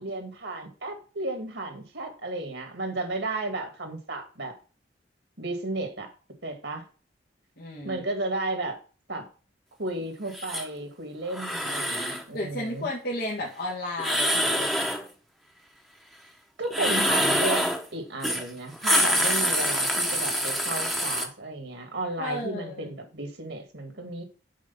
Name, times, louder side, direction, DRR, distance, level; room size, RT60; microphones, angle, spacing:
voice 1, 0.0-4.6 5.4-6.1 6.4-6.9 7.8-8.8 9.1-9.3 9.8-12.9 16.6-24.2, right 2 dB, 70° right, 5 dB, 2.2 m, -33 dB
voice 2, 7.6-8.0 12.3-14.7 22.2-22.9, left 1 dB, 55° left, -4 dB, 1.7 m, -33 dB
sound 1, 10.3-10.7 11.3-12.2 14.0-15.0 16.7-17.8 18.2-18.4 18.7-21.2, equal, ahead, 1.3 m, -25 dB
6.4 x 5.2 x 7.0 m, 0.37 s
head